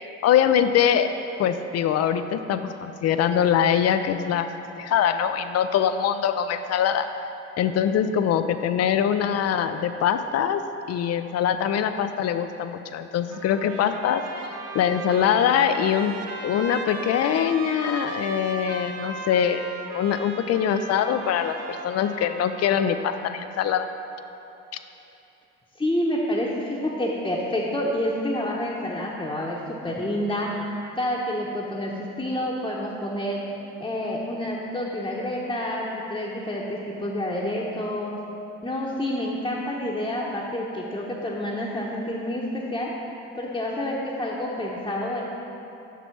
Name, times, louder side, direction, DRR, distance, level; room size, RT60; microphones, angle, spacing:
voice 1, 0.2-1.1 1.4-4.5 4.8-7.1 7.6-10.6 10.9-14.5 14.7-16.1 16.4-19.6 19.9-23.9, left 8 dB, 50° left, 9 dB, 0.4 m, -23 dB
Trumpet, 13.3-23.0, right 3 dB, 45° right, 0.8 m, -37 dB
voice 2, 25.8-30.6 30.9-33.4 33.8-38.2 38.6-42.9 43.4-45.2, left 1 dB, 10° left, -5 dB, 0.9 m, -28 dB
5.9 x 4.7 x 5.8 m, 2.9 s
hypercardioid pair, 50°, 35 cm